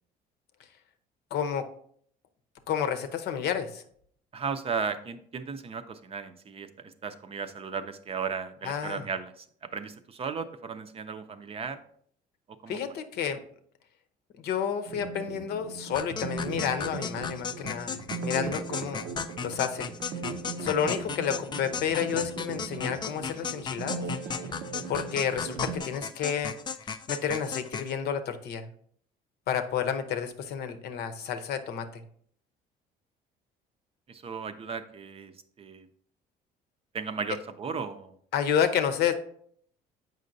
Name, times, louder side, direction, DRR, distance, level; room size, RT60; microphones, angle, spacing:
voice 1, 1.3-1.7 2.7-3.8 8.6-9.0 12.7-13.4 14.4-19.1 19.4-19.9 20.6-24.0 24.9-26.5 27.1-28.7 29.5-32.0 38.3-39.1, left 8 dB, 70° left, 9 dB, 0.7 m, -30 dB
voice 2, 4.3-11.8 12.5-12.8 34.1-35.3 35.6-35.9 36.9-38.2, right 5 dB, 35° right, 10 dB, 0.5 m, -35 dB
sound 1, 14.9-25.8, right 4 dB, 75° right, 0.6 m, -38 dB
sound 2, 15.9-27.9, left 6 dB, 25° left, 0.4 m, -36 dB
7.5 x 5.3 x 2.6 m, 0.62 s
cardioid pair, 110°, 17 cm